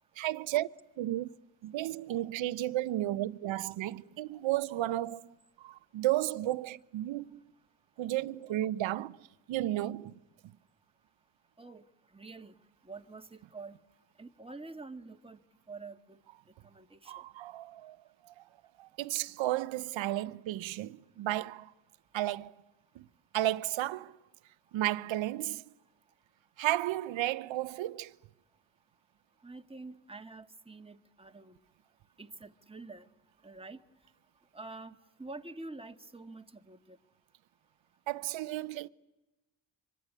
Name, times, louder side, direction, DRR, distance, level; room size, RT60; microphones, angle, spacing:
voice 1, 0.2-0.7 1.0-1.3 1.6-5.3 5.6-7.4 8.0-9.2 9.5-10.1 17.1-18.0 18.2-18.4 18.8-21.7 22.1-22.5 22.9-23.1 23.3-24.1 24.7-25.6 26.6-28.1 38.1-38.9, right 15 dB, 70° right, 0.9 m, -33 dB
voice 2, 12.1-12.5 12.8-13.8 14.2-15.4 15.7-16.2 16.6-17.1 29.4-31.6 32.2-33.1 33.4-33.8 34.5-37.0, right 3 dB, 10° right, 1.7 m, -47 dB
25.0 x 24.0 x 9.7 m
supercardioid pair, 55°, 47 cm